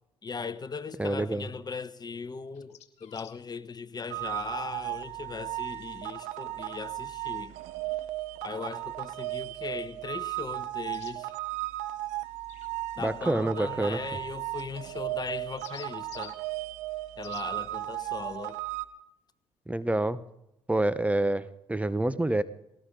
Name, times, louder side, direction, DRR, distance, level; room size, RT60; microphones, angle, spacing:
voice 1, 0.2-7.5 8.4-11.3 13.0-16.4 17.2-18.6, left 5 dB, 35° left, 13 dB, 1.1 m, -38 dB
voice 2, 1.0-1.5 13.0-14.0 19.7-20.2 20.7-22.4, right 1 dB, 10° right, 14 dB, 0.9 m, -27 dB
sound 1, 2.5-3.4 6.6-6.7 10.9-11.2 12.4-12.7 14.6-14.7 15.4-16.4 17.2-17.5, left 12 dB, 65° left, 1.4 m, -49 dB
sound 2, 4.1-18.8, right 17 dB, 80° right, 0.9 m, -36 dB
19.5 x 18.0 x 3.8 m, 0.89 s
hypercardioid pair, 55°, 12 cm